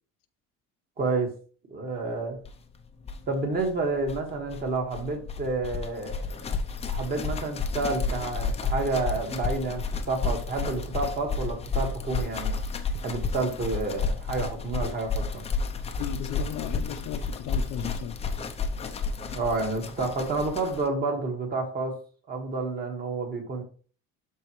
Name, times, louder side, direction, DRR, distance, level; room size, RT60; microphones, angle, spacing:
voice 1, 1.0-1.3 1.7-2.4 3.3-6.5 6.9-12.6 13.0-15.4 19.3-22.0 22.3-23.6, right 3 dB, 30° right, 1.8 m, -29 dB
sound 1, 2.4-2.5 2.7-2.8 3.0-20.9, left 4 dB, 20° left, 0.6 m, -31 dB
voice 2, 16.0-18.2, left 9 dB, 75° left, 0.9 m, -35 dB
12.0 x 4.3 x 3.2 m
cardioid pair, 175°, 31 cm